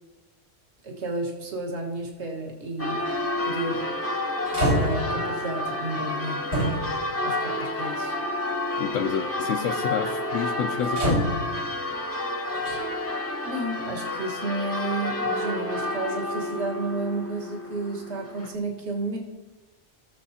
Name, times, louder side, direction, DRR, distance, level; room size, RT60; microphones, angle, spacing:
voice 1, 0.8-3.0 3.4-3.9 4.7-6.4 7.2-8.2 13.5-19.2, right 2 dB, 60° right, -1 dB, 1.8 m, -32 dB
Church bell, 2.8-18.5, left 1 dB, 15° left, 0.7 m, -30 dB
sound 1, 3.0-3.3 4.0-4.1 4.5-5.2 6.5-7.1 8.0-8.1 10.8-11.7 12.5-12.8, right 1 dB, 80° right, 3.6 m, -26 dB
voice 2, 8.8-11.3, left 8 dB, 90° left, 4 dB, 1.0 m, -29 dB
17.5 x 7.0 x 2.8 m, 1.2 s
omnidirectional pair, 1.3 m